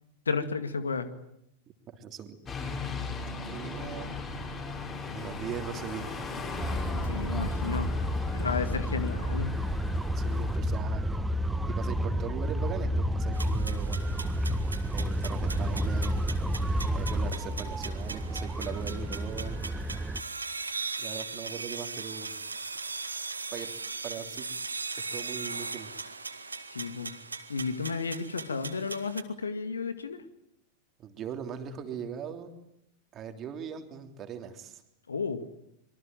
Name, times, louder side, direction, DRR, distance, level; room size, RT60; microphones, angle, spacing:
voice 1, 0.3-1.1 7.0-7.9 8.3-9.6 26.4-27.1 27.5-30.2 35.1-35.4, left 5 dB, 75° left, 11 dB, 2.1 m, -32 dB
voice 2, 1.9-2.4 3.4-4.1 5.1-6.1 8.3-8.5 10.1-11.2 11.7-14.0 14.9-16.2 16.9-19.6 21.0-22.3 23.5-23.7 24.0-24.5 25.1-25.9 31.0-32.5 33.1-34.8, right 7 dB, 30° right, 6 dB, 3.3 m, -39 dB
sound 1, 2.5-10.6, left 3 dB, 25° left, 7.1 m, -38 dB
sound 2, 6.6-20.2, equal, 5° right, 1.3 m, -30 dB
sound 3, 13.3-29.2, right 4 dB, 80° right, 2.0 m, -39 dB
26.0 x 23.5 x 9.2 m, 0.78 s
figure-of-eight pair, 90°, 0 cm